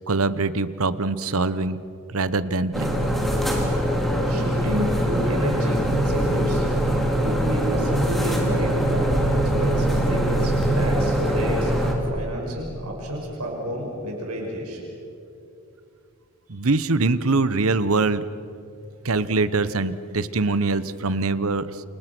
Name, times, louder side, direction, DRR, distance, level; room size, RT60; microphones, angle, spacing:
voice 1, 0.1-1.8 2.1-3.0 16.5-18.2 19.0-21.8, right 3 dB, 65° right, 14 dB, 1.0 m, -23 dB
sound 1, 2.7-11.9, right 1 dB, ahead, 3.8 m, -22 dB
voice 2, 4.3-6.6 7.2-14.8, equal, 85° right, -1 dB, 6.2 m, -30 dB
29.0 x 28.5 x 6.2 m, 2.6 s
head